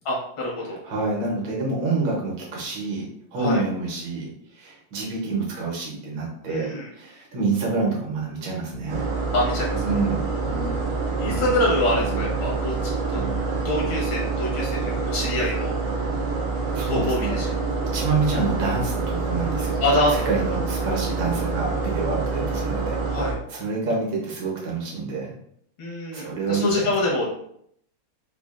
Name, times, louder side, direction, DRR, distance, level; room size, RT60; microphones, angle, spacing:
voice 1, 0.1-0.8 3.4-3.6 6.5-6.9 9.3-9.8 11.2-12.7 13.1-13.2 13.7-15.7 16.9-17.5 19.8-20.2 23.1-23.4 25.8-27.3, left 1 dB, 75° left, -4 dB, 2.0 m, -25 dB
voice 2, 0.8-9.1 9.8-10.3 16.5-19.8 20.1-23.0 23.5-25.3 26.1-26.9, right 3 dB, 70° right, -3 dB, 1.7 m, -27 dB
sound 1, 8.7-10.2 10.5-11.7 12.0-12.5 12.8-13.6 13.9-14.0, right 1 dB, 25° left, 0.6 m, -36 dB
sound 2, 8.9-23.3, right 4 dB, 85° right, 1.5 m, -26 dB
4.9 x 2.4 x 2.4 m, 0.69 s
omnidirectional pair, 2.3 m